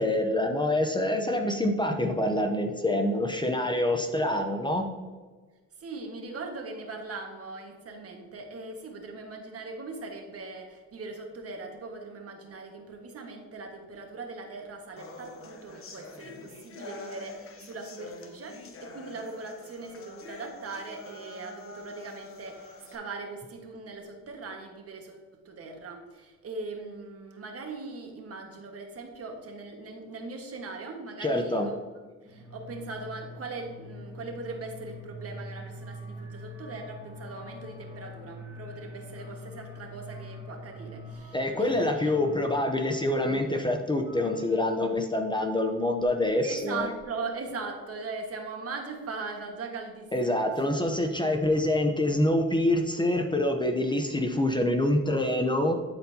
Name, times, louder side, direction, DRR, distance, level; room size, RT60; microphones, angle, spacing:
voice 1, 0.0-4.9 31.2-31.7 41.3-46.9 50.1-55.7, left 1 dB, 15° left, 5 dB, 0.7 m, -26 dB
voice 2, 5.8-31.8 32.2-42.2 46.4-50.4 51.4-51.5, right 3 dB, 50° right, 2 dB, 1.5 m, -40 dB
sound 1, 15.0-23.0, left 3 dB, 45° left, 1.0 m, -46 dB
sound 2, 32.2-44.9, equal, 10° right, 2.1 m, -44 dB
11.5 x 4.3 x 2.8 m, 1.4 s
cardioid pair, 90°, 30 cm